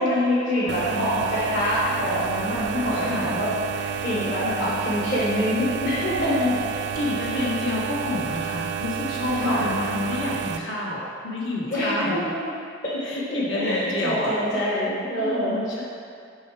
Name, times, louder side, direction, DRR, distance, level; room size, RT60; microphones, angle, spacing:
voice 1, 0.0-6.6 7.0-7.5 9.3-9.7 11.7-12.4 12.8-15.8, equal, 50° left, -10 dB, 1.5 m, -25 dB
voice 2, 0.6-1.1 2.9-3.4 4.3-4.8 6.1-6.5 6.9-12.3 13.0-14.3 15.1-15.8, left 2 dB, 70° left, -4 dB, 1.3 m, -29 dB
sound 1, 0.7-10.6, right 7 dB, 55° right, 0.3 m, -30 dB
5.7 x 5.4 x 4.8 m, 2.3 s
head